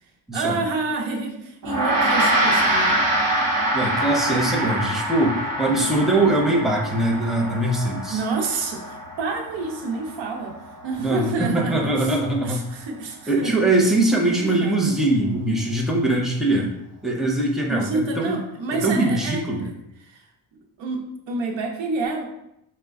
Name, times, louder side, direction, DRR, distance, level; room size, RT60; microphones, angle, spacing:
voice 1, 0.3-3.0 8.1-12.2 12.4-13.7 14.1-14.9 17.7-19.7 20.1-20.2 20.5-22.2, right 3 dB, 85° right, 1 dB, 0.8 m, -28 dB
Gong, 1.6-11.3, right 1 dB, 50° right, 1.0 m, -25 dB
voice 2, 3.7-8.2 11.0-12.6 13.3-16.7 17.0-18.4 18.7-19.7, right 2 dB, ahead, -2 dB, 0.6 m, -22 dB
4.9 x 2.2 x 3.4 m, 0.80 s
wide cardioid pair, 140°, 44 cm